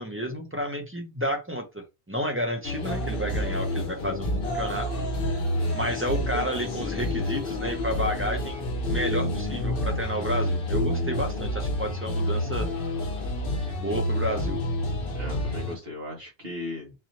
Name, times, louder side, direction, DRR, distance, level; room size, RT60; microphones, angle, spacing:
voice 1, 0.0-5.0 5.7-12.7 13.8-14.6, equal, 15° right, 2 dB, 0.6 m, -31 dB
sound 1, 2.6-15.8, left 1 dB, 60° left, 1.0 m, -28 dB
voice 2, 5.6-5.9 15.1-16.9, left 2 dB, 65° right, -2 dB, 1.8 m, -37 dB
4.0 x 2.8 x 2.9 m, 0.25 s
omnidirectional pair, 1.1 m